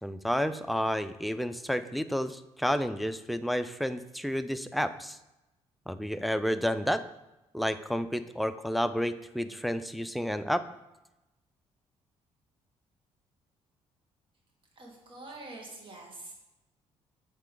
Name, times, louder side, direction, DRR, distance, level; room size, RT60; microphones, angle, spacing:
voice 1, 0.0-5.2 5.9-7.0 7.5-10.7, equal, ahead, 10 dB, 0.3 m, -30 dB
voice 2, 14.7-16.3, right 2 dB, 45° right, -1 dB, 1.8 m, -45 dB
8.4 x 3.3 x 3.7 m, 0.97 s
cardioid pair, 80°, 11 cm